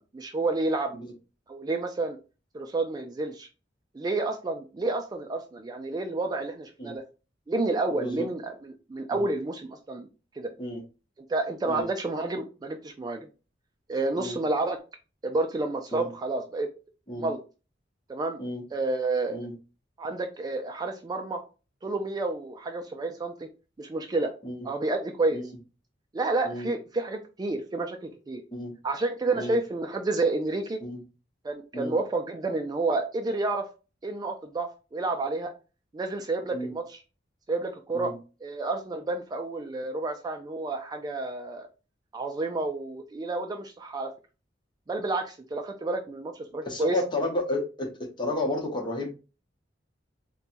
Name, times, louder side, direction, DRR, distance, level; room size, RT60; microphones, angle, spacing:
voice 1, 0.1-0.9 1.5-2.2 2.5-3.5 3.9-7.0 7.5-10.1 10.3-10.5 11.3-13.3 13.9-14.8 15.2-16.7 17.2-17.4 18.1-18.4 18.7-19.4 20.0-21.4 21.8-23.5 23.8-24.3 24.6-25.4 26.1-28.4 28.8-30.8 31.4-33.7 34.0-35.5 35.9-37.0 37.5-38.1 38.4-41.7 42.1-44.1 44.9-47.0, right 2 dB, 20° right, 5 dB, 0.3 m, -30 dB
voice 2, 8.0-8.3 9.1-9.2 10.6-10.8 11.7-11.9 14.2-14.4 15.9-16.1 17.1-17.3 18.4-18.6 19.3-19.5 24.4-24.7 25.3-25.5 26.4-26.7 28.5-28.7 29.3-29.6 30.8-31.0 31.7-31.9 36.5-36.7 37.9-38.1 46.6-49.1, left 1 dB, 25° left, 1 dB, 0.9 m, -32 dB
4.1 x 2.2 x 2.5 m, 0.32 s
head